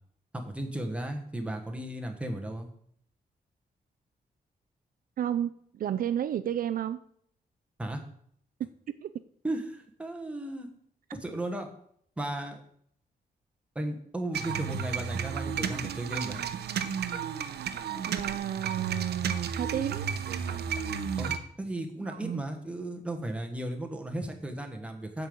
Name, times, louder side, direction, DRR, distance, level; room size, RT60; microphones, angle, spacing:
voice 1, 0.3-2.7 7.8-8.0 9.4-10.7 11.2-11.7 12.2-12.6 13.7-16.4 21.2-21.3 21.6-25.3, right 1 dB, 5° right, 3 dB, 1.2 m, -35 dB
voice 2, 5.2-7.0 9.0-9.1 18.1-20.1 22.1-22.4, right 10 dB, 60° right, 11 dB, 0.4 m, -32 dB
sound 1, 14.3-21.4, right 7 dB, 85° right, 0.8 m, -33 dB
8.1 x 5.3 x 7.7 m, 0.66 s
wide cardioid pair, 175°, 16 cm